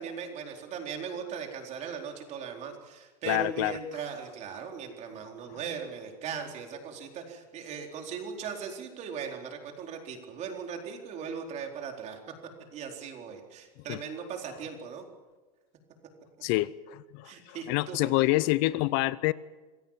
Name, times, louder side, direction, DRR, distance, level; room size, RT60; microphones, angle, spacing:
voice 1, 0.0-12.2 12.7-15.0 17.2-18.1, right 6 dB, 35° right, 4.1 m, -38 dB
voice 2, 3.2-3.8 13.9-14.0 16.4-19.3, left 20 dB, 50° left, 0.6 m, -27 dB
26.5 x 16.5 x 7.4 m
supercardioid pair, 135°, 20 cm